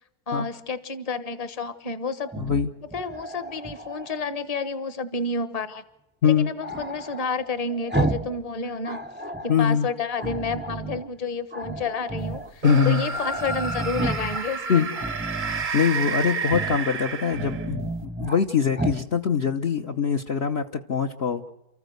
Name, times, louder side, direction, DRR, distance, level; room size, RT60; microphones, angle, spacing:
voice 1, 0.3-2.3 2.9-5.8 6.2-9.0 9.4-14.9, left 4 dB, 25° left, 12 dB, 1.2 m, -30 dB
Growling, 2.2-4.2 6.6-8.4 8.7-9.6 10.2-11.1 11.5-12.5 12.8-12.9 13.1-14.4 14.9-15.7 16.4-16.8 17.2-18.4 18.7-19.0, right 2 dB, 10° right, 0.7 m, -32 dB
voice 2, 2.4-2.7 6.2-6.5 9.5-9.9 12.6-13.0 14.7-14.9 15.7-21.5, left 7 dB, 50° left, 2 dB, 1.1 m, -23 dB
sound 1, 12.6-17.8, right 4 dB, 40° right, 0.9 m, -30 dB
29.5 x 14.5 x 8.0 m, 0.96 s
omnidirectional pair, 1.6 m